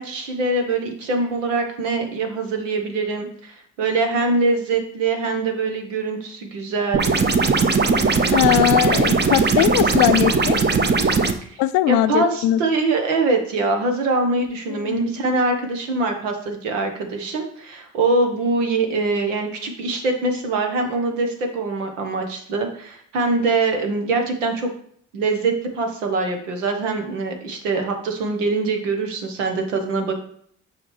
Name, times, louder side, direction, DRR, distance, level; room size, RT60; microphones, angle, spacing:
voice 1, 0.0-7.0 11.4-11.5 11.9-24.7 25.1-30.2, right 3 dB, 90° right, 4 dB, 0.9 m, -23 dB
sound 1, 6.9-11.3, right 4 dB, 30° right, 0.8 m, -18 dB
voice 2, 8.3-10.6 11.6-12.6 14.7-15.3, left 13 dB, 70° left, 13 dB, 0.5 m, -20 dB
7.2 x 5.0 x 3.1 m, 0.63 s
hypercardioid pair, 45°, 37 cm